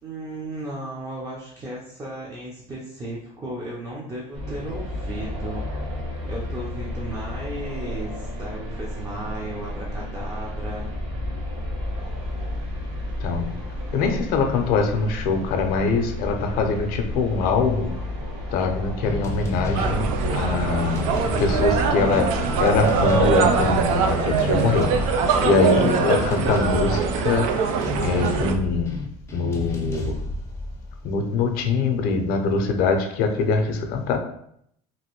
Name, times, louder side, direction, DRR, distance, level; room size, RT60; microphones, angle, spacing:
voice 1, 0.0-5.6 6.2-10.9, right 1 dB, 20° right, -4 dB, 0.6 m, -35 dB
sound 1, 4.3-24.0, left 1 dB, 45° right, 0.9 m, -32 dB
voice 2, 12.0-12.5 13.0-13.6 13.9-18.0 18.5-29.0 29.3-30.2 31.0-34.2, left 4 dB, 60° left, 4 dB, 0.6 m, -23 dB
sound 2, 19.0-31.8, left 2 dB, 15° left, 0.5 m, -32 dB
sound 3, 19.7-28.5, right 5 dB, 80° right, 0.4 m, -23 dB
3.0 x 2.6 x 2.9 m, 0.71 s
supercardioid pair, 115°, 17 cm